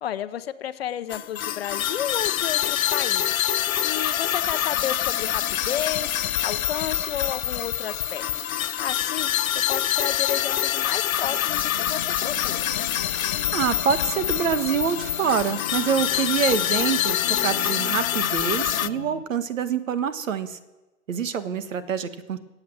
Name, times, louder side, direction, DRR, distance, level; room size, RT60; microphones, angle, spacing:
voice 1, 0.0-3.4 3.8-6.1 6.4-8.2 8.8-9.3 9.7-12.6, left 10 dB, 50° left, 12 dB, 0.8 m, -32 dB
sound 1, 1.1-18.9, left 11 dB, 90° left, 0.7 m, -26 dB
sound 2, 11.2-19.2, left 6 dB, 25° left, 0.5 m, -39 dB
voice 2, 13.5-20.6 21.1-22.4, right 7 dB, 75° right, 12 dB, 1.4 m, -26 dB
17.0 x 8.6 x 7.7 m, 1.1 s
hypercardioid pair, 165°, 40 cm